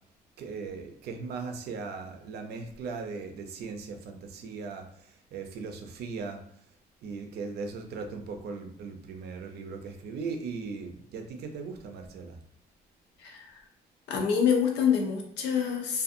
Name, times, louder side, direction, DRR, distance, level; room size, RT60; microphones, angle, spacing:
voice 1, 0.4-4.9 5.3-6.4 7.0-12.4, right 4 dB, 70° right, 5 dB, 0.5 m, -38 dB
voice 2, 13.2-13.6 14.1-16.0, left 7 dB, 90° left, 2 dB, 0.6 m, -26 dB
2.6 x 2.3 x 2.5 m, 0.64 s
cardioid pair, 125°, 17 cm